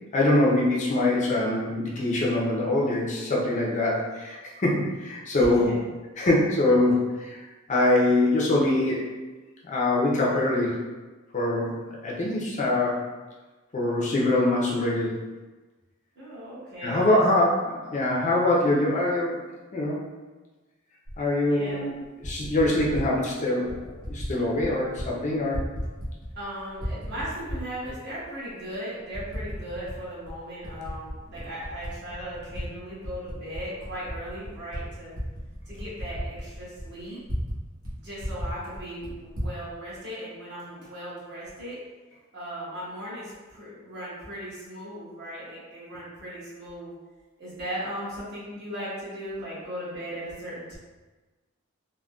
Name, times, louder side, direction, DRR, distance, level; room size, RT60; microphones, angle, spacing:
voice 1, 0.1-5.7 6.2-7.4 7.7-9.0 9.6-10.8 11.3-11.8 12.0-13.0 13.7-15.1 16.8-19.4 19.7-20.0 21.2-21.9 22.2-23.7 24.1-25.6, left 2 dB, 35° left, -3 dB, 0.5 m, -23 dB
voice 2, 5.3-5.9 16.1-17.2 21.4-21.8 26.4-35.1 35.7-37.2 38.0-41.8 42.3-46.9 47.4-50.8, equal, 55° right, -9 dB, 1.3 m, -37 dB
Typing, 21.1-21.2 22.0-23.1 23.7-24.3 24.6-25.1 25.4-26.4 26.7-27.9 28.5-28.6 29.1-30.0 30.3-32.6 33.0-37.6 37.8-37.9 38.2-39.5, equal, 75° right, 1.0 m, -35 dB
3.6 x 2.1 x 2.3 m, 1.2 s
head